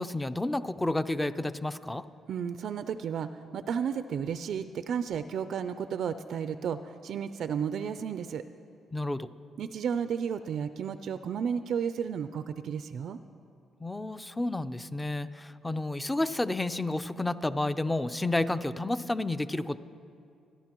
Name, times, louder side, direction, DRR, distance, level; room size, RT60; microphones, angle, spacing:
voice 1, 0.0-2.0 8.9-9.3 13.8-19.8, left 2 dB, 10° left, 12 dB, 0.5 m, -31 dB
voice 2, 2.3-8.4 9.6-13.2, right 7 dB, 65° right, 11 dB, 0.4 m, -33 dB
29.0 x 11.0 x 3.0 m, 2.5 s
cardioid pair, 90°, 0 cm